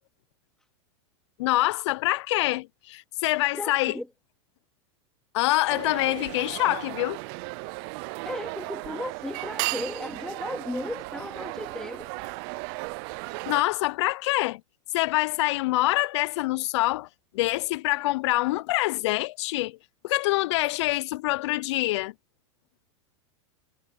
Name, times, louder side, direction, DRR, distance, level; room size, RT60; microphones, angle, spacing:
voice 1, 1.4-3.9 5.3-7.2 13.5-14.6 14.9-17.1 17.3-19.8 20.0-22.1, left 19 dB, 65° left, 0.6 m, -25 dB
voice 2, 3.5-4.1 8.2-12.1, left 1 dB, 5° left, 2.7 m, -35 dB
sound 1, 5.7-13.6, right 29 dB, 50° right, 0.6 m, -35 dB
hypercardioid pair, 115°, 16 cm